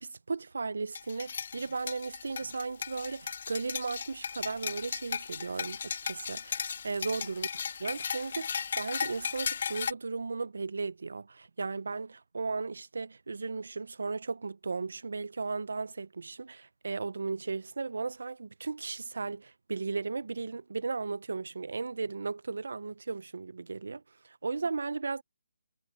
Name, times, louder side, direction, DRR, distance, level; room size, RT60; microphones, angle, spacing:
voice 1, 0.0-7.5 7.8-25.2, right 4 dB, 80° right, 0.7 m, -36 dB
sound 1, 0.9-9.9, left 6 dB, 55° left, 1.9 m, -36 dB
hypercardioid pair, 160°, 0 cm